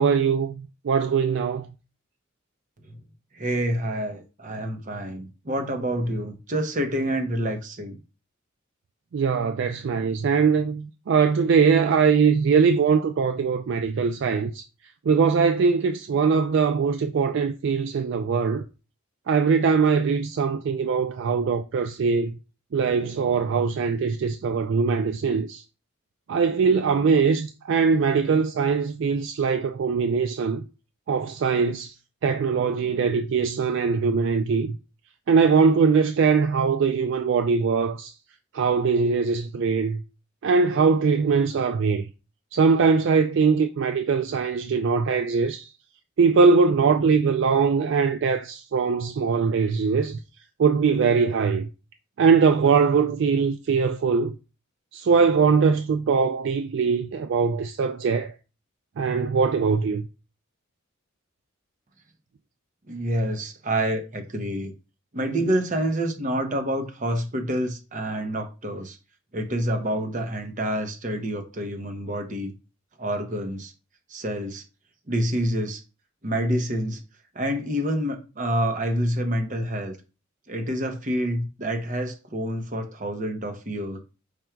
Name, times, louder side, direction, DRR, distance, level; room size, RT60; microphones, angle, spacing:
voice 1, 0.0-1.7 9.1-14.6 15.1-18.6 19.3-22.4 22.7-25.6 26.3-30.6 31.1-31.9 32.2-34.8 35.3-38.1 38.5-40.0 40.4-42.1 42.5-45.7 46.2-50.2 50.6-51.7 52.2-54.3 54.9-58.3 59.0-60.0, right 5 dB, 60° right, 0.3 m, -21 dB
voice 2, 3.3-8.0 62.9-64.7 65.1-69.0 69.3-72.5 73.0-73.7 74.1-74.6 75.1-75.8 76.2-77.0 77.3-80.0 80.5-84.0, right 1 dB, 40° right, 0.8 m, -27 dB
5.1 x 2.3 x 4.4 m
head